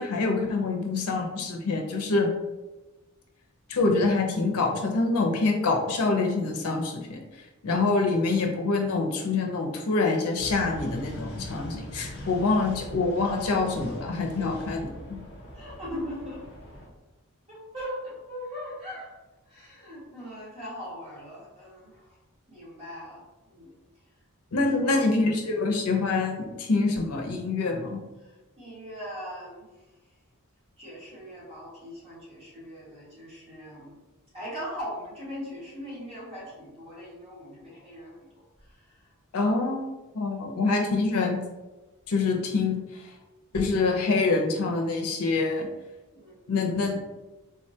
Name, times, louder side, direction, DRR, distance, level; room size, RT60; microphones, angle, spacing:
voice 1, 0.0-2.3 3.7-7.2 7.6-15.2 24.5-28.0 39.3-39.8 40.1-41.4 42.1-42.8 43.5-45.7 46.5-47.0, left 3 dB, 80° left, 2 dB, 0.5 m, -25 dB
sound 1, 10.4-16.9, equal, 45° left, 0.8 m, -41 dB
voice 2, 15.5-16.4 17.5-19.1 19.5-22.2 22.5-23.7 24.8-25.0 28.2-29.7 30.8-34.0 34.3-38.2 38.6-39.1 43.1-43.2 46.1-46.7, equal, 25° right, -9 dB, 1.5 m, -40 dB
3.5 x 2.2 x 2.7 m, 1.1 s
head